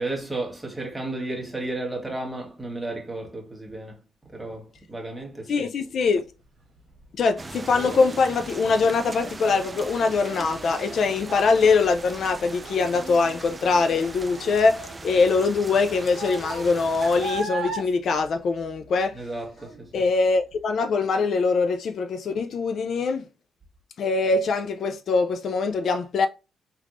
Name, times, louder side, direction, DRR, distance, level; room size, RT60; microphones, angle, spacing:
voice 1, 0.0-4.0 4.3-5.6 19.1-20.1, right 2 dB, 10° right, 1.2 m, -33 dB
voice 2, 5.5-6.3 7.2-19.2 19.9-23.2 24.0-26.3, left 4 dB, 60° left, 0.3 m, -23 dB
Child speech kid speaking, 6.6-19.2 19.6-20.0 20.5-20.6, right 3 dB, 60° right, 1.2 m, -38 dB
sound 1, 7.4-17.4, right 3 dB, 25° right, 0.3 m, -40 dB
3.5 x 2.9 x 2.4 m
cardioid pair, 90°, 0 cm